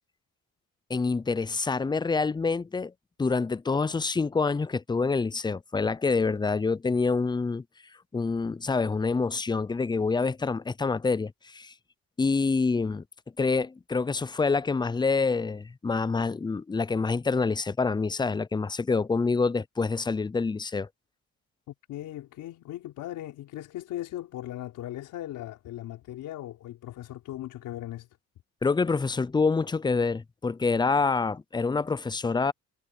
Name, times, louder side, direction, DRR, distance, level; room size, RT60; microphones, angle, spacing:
voice 1, 0.9-2.9 3.2-7.6 8.1-11.7 12.2-13.0 13.4-20.9 28.6-32.5, left 4 dB, 15° left, 0.5 m, -26 dB
voice 2, 21.7-28.1, left 13 dB, 90° left, 4.4 m, -38 dB
cardioid pair, 90°, 30 cm